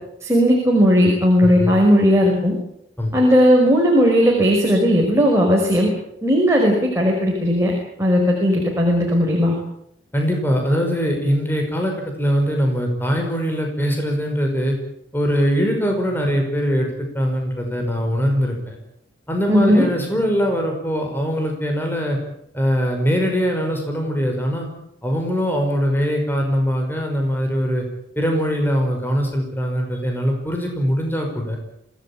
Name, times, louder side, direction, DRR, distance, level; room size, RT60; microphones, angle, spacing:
voice 1, 0.2-2.5 3.1-5.9 6.2-7.7 8.0-9.6 19.5-19.8, equal, 15° right, -1 dB, 5.6 m, -16 dB
voice 2, 10.1-11.9 12.2-14.8 15.1-18.8 19.3-22.2 22.5-24.7 25.0-27.8 28.2-31.6, equal, 10° left, 2 dB, 5.4 m, -21 dB
26.5 x 18.0 x 8.8 m, 0.78 s
head